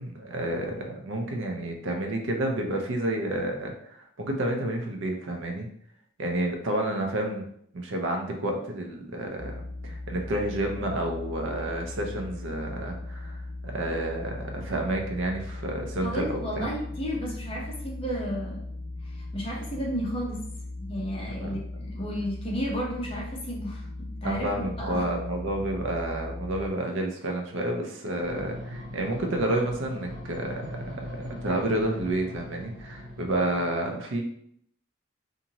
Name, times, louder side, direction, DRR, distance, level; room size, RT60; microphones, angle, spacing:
voice 1, 0.0-5.7 6.2-7.4 7.7-13.4 13.6-16.7 21.4-21.6 24.2-34.2, right 1 dB, 60° right, 2 dB, 0.5 m, -30 dB
sound 1, 9.4-26.7, left 2 dB, 60° left, 0.4 m, -38 dB
voice 2, 16.0-18.6 19.0-20.5 20.8-24.5 24.8-25.0, equal, 25° left, -3 dB, 0.7 m, -33 dB
sound 2, 28.2-33.7, left 1 dB, ahead, 1.3 m, -40 dB
2.6 x 2.6 x 2.8 m, 0.67 s
head